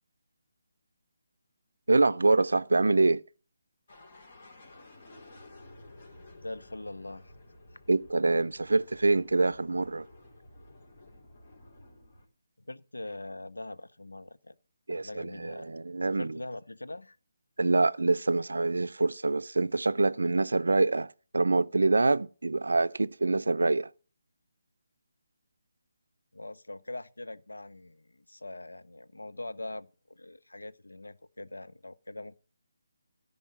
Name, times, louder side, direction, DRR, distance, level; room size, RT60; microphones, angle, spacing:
voice 1, 1.9-3.2 7.9-10.1 14.9-16.4 17.6-23.9, right 3 dB, 75° right, 0.4 m, -25 dB
sound 1, 3.9-12.3, left 1 dB, 45° left, 3.7 m, -53 dB
voice 2, 6.4-7.3 12.6-14.5 14.9-15.8 16.1-17.2 26.3-32.4, left 2 dB, 85° left, 0.7 m, -42 dB
13.5 x 5.4 x 6.5 m
figure-of-eight pair, 150°, 0 cm